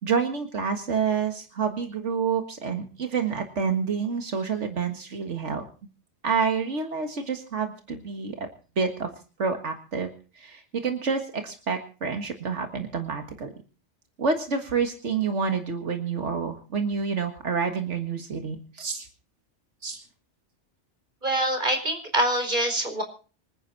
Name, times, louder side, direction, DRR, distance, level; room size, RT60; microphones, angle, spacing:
voice 1, 0.0-5.6 6.2-8.5 8.8-9.1 9.4-13.5 14.2-19.1 19.8-20.0, right 5 dB, 85° right, 5 dB, 2.0 m, -28 dB
voice 2, 21.2-23.0, right 1 dB, 45° right, 5 dB, 4.8 m, -25 dB
26.5 x 9.9 x 4.0 m, 0.37 s
omnidirectional pair, 1.2 m